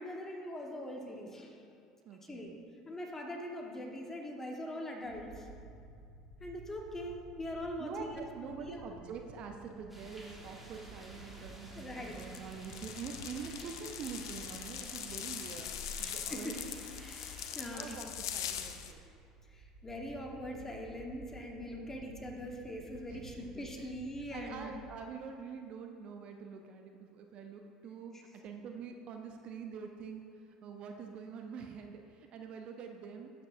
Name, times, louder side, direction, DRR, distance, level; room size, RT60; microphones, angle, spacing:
voice 1, 0.0-1.6 2.2-5.5 6.4-8.8 11.7-12.2 16.0-16.6 17.0-18.0 19.5-24.7 28.1-28.2, left 1 dB, 20° left, 1 dB, 1.4 m, -42 dB
voice 2, 2.0-2.5 7.8-15.7 16.0-16.5 17.7-18.1 18.3-19.0 23.1-23.7 24.3-30.2 30.5-33.3, right 6 dB, 50° right, 4 dB, 0.7 m, -45 dB
sound 1, 5.0-24.9, right 2 dB, 75° right, 1.3 m, -55 dB
sound 2, 9.9-18.0, right 1 dB, 5° right, 2.0 m, -53 dB
sound 3, 12.1-18.9, left 9 dB, 75° left, 0.5 m, -42 dB
12.0 x 7.9 x 2.7 m, 2.4 s
hypercardioid pair, 70°, 2 cm